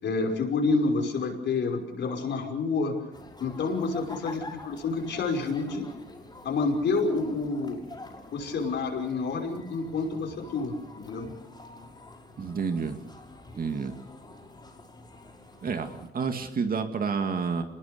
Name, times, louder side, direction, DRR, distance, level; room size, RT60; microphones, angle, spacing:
voice 1, 0.0-3.0 3.4-5.9 6.4-7.8 8.3-11.3, left 3 dB, 65° left, 3 dB, 5.7 m, -28 dB
sound 1, 3.1-16.1, left 2 dB, 20° left, 5.9 m, -47 dB
voice 2, 12.4-13.0 13.5-13.9 15.6-17.6, right 5 dB, 45° right, 6 dB, 2.3 m, -29 dB
26.0 x 20.5 x 7.0 m, 0.88 s
cardioid pair, 90°, 20 cm